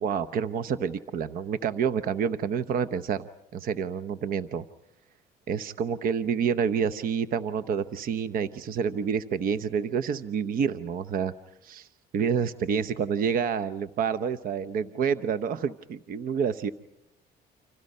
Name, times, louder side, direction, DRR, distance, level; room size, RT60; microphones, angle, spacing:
voice 1, 0.0-3.3 3.5-4.6 5.5-11.3 11.6-11.9 12.1-16.7, right 7 dB, 55° right, 12 dB, 0.9 m, -28 dB
30.0 x 26.5 x 5.5 m, 0.84 s
cardioid pair, 110°, 17 cm